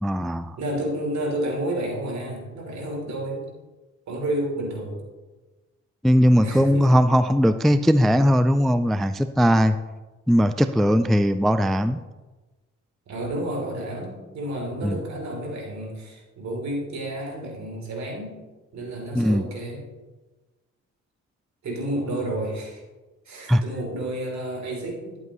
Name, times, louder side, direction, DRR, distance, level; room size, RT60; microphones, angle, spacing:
voice 1, 0.0-0.6 6.0-9.8 10.3-12.0 14.8-15.0 19.2-19.5 23.5-23.6, equal, ahead, 11 dB, 0.3 m, -19 dB
voice 2, 0.6-3.5 4.1-5.0 6.4-7.0 13.1-18.4 18.7-19.8 21.6-22.8 23.2-25.2, right 1 dB, 65° right, 0 dB, 3.3 m, -30 dB
12.0 x 8.2 x 3.1 m, 1.2 s
cardioid pair, 90°, 30 cm